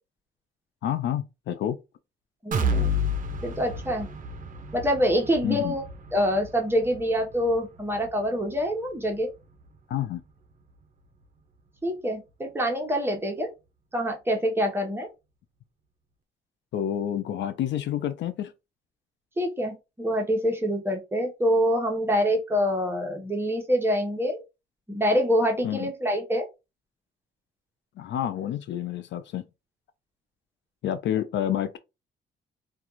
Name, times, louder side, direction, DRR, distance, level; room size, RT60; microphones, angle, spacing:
voice 1, 0.8-1.8 5.4-5.8 9.9-10.2 16.7-18.5 25.6-25.9 28.0-29.4 30.8-31.8, left 10 dB, 65° left, 0.4 m, -29 dB
voice 2, 2.4-2.9 3.4-4.1 4.7-5.8 6.1-9.3 11.8-13.5 13.9-15.1 19.4-24.4 24.9-26.5, equal, 10° right, 0.8 m, -25 dB
sound 1, 2.5-10.3 10.7-10.8 11.2-11.3, left 1 dB, 40° right, 0.6 m, -32 dB
2.4 x 2.3 x 2.9 m
cardioid pair, 90°, 20 cm